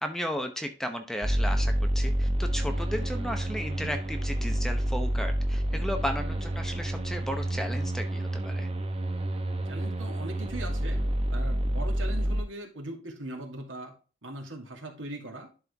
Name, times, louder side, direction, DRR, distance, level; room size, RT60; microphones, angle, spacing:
voice 1, 0.0-8.7, equal, ahead, 5 dB, 0.8 m, -34 dB
sound 1, 1.2-12.4, right 1 dB, 30° right, 0.9 m, -29 dB
voice 2, 9.7-11.0 11.3-13.9 14.2-15.5, right 1 dB, 80° right, 1 dB, 2.5 m, -40 dB
11.0 x 4.5 x 3.4 m, 0.35 s
head